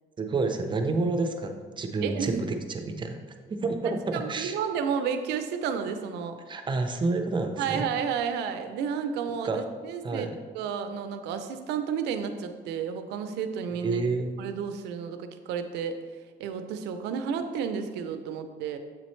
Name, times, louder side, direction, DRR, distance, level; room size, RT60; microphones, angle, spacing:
voice 1, 0.2-3.2 3.5-4.6 6.5-7.9 9.4-9.6 10.0-10.4 13.8-14.3, right 3 dB, 30° right, 5 dB, 0.6 m, -29 dB
voice 2, 2.0-2.4 4.1-6.4 7.6-10.3 10.5-14.0 14.4-16.0 16.4-18.8, right 7 dB, 85° right, 8 dB, 0.5 m, -31 dB
7.4 x 4.2 x 3.1 m, 1.5 s
cardioid pair, 110°, 17 cm